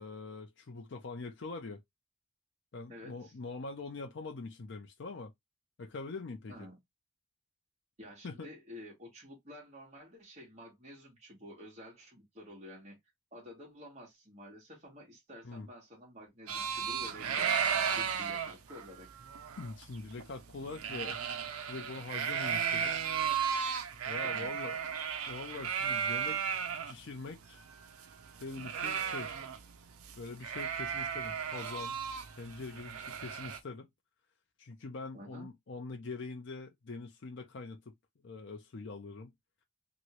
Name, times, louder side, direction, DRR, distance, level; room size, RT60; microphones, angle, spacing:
voice 1, 0.0-1.8 2.7-5.3 5.8-6.7 8.2-8.5 15.4-15.7 19.6-21.2 21.7-23.0 24.1-24.8 25.3-27.6 28.4-29.3 30.2-32.0 32.4-33.9 34.6-37.9 38.2-39.3, left 3 dB, 55° left, 0.5 m, -43 dB
voice 2, 2.9-3.3 6.5-6.8 8.0-13.0 13.3-17.6 17.9-19.1 22.4-22.6 24.2-24.6 35.1-35.5, left 1 dB, 30° right, 1.5 m, -50 dB
sound 1, 16.5-26.9 27.3-27.4 27.6-29.7 30.0-30.2 30.4-33.6, right 7 dB, 85° right, 0.5 m, -35 dB
3.0 x 2.7 x 2.9 m
head